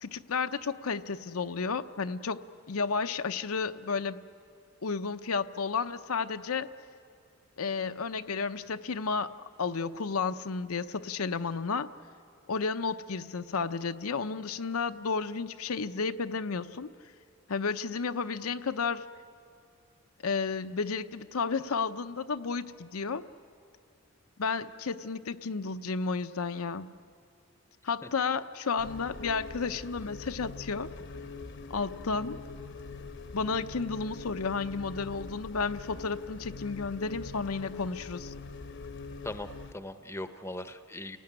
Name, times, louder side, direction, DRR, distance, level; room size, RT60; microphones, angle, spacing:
voice 1, 0.0-2.4 2.7-4.2 4.8-6.7 7.6-9.3 9.6-11.9 12.5-16.9 17.5-19.1 20.2-23.2 24.4-26.9 27.8-30.9 31.7-32.4 33.3-38.3, left 5 dB, 80° left, 9 dB, 0.7 m, -32 dB
sound 1, 28.8-39.7, left 4 dB, 55° left, 0.9 m, -43 dB
voice 2, 39.2-41.2, left 1 dB, 10° left, 10 dB, 0.7 m, -39 dB
29.5 x 17.5 x 9.9 m, 2.4 s
head